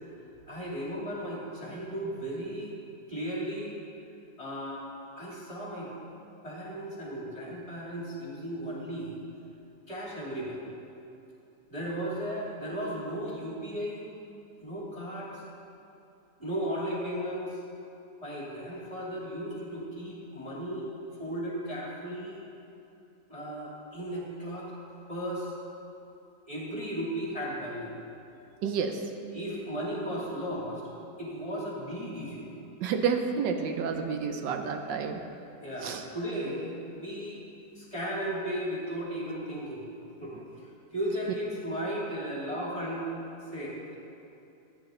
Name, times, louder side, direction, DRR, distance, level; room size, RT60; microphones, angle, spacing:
voice 1, 0.5-2.7 3.1-3.7 4.4-4.8 5.2-5.9 6.4-9.2 9.9-10.6 11.7-14.0 14.6-15.4 16.4-17.6 18.2-20.9 21.2-22.4 23.3-24.7 25.1-25.5 26.5-27.9 29.3-30.8 31.2-32.5 35.6-37.4 37.7-39.8 40.2-40.3 40.9-43.1 43.5-43.7, equal, 20° left, -6 dB, 2.7 m, -35 dB
voice 2, 28.6-29.0 32.8-35.2 35.8-36.0, right 6 dB, 80° right, 5 dB, 1.4 m, -30 dB
14.0 x 9.2 x 3.8 m, 2.8 s
omnidirectional pair, 1.9 m